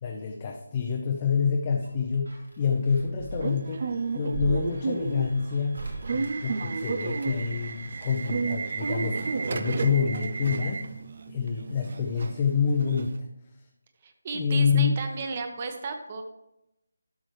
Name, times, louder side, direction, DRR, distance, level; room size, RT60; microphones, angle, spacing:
voice 1, 0.0-3.8 4.1-5.8 6.1-10.9 11.3-13.3 14.3-15.0, left 6 dB, 30° left, 1 dB, 0.7 m, -27 dB
sound 1, 1.2-7.3 8.7-9.5 9.8-9.9, right 3 dB, 85° right, 2.4 m, -39 dB
Subway metro underground / Alarm, 3.3-13.2, right 4 dB, 50° right, 0.5 m, -32 dB
voice 2, 14.0-16.2, right 4 dB, 35° right, 6 dB, 1.1 m, -34 dB
12.0 x 6.1 x 3.3 m, 0.89 s
figure-of-eight pair, 160°, 0 cm